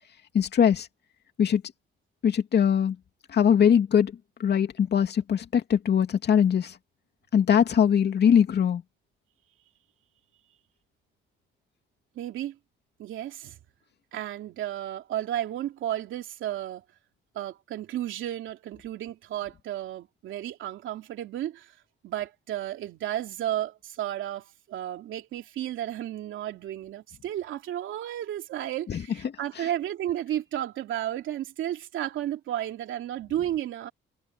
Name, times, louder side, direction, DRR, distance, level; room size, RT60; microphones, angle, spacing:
voice 1, 0.3-0.9 1.4-1.6 2.2-3.0 3.3-4.1 4.4-6.8 7.3-8.8 28.9-29.0, left 8 dB, 55° left, 2.6 m, -21 dB
voice 2, 12.1-12.6 13.0-13.6 14.1-16.8 17.3-21.7 22.0-33.9, right 12 dB, 80° right, 2.9 m, -33 dB
cardioid pair, 90°, 20 cm